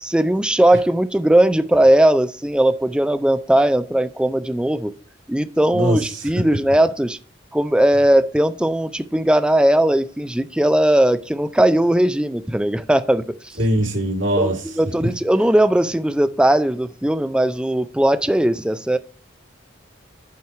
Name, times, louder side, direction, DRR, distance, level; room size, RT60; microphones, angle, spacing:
voice 1, 0.0-4.9 5.3-7.2 7.5-13.6 14.4-19.0, right 1 dB, 5° right, 0.4 m, -18 dB
voice 2, 13.6-14.6, equal, 75° right, 2.5 m, -20 dB
8.5 x 4.6 x 4.5 m
head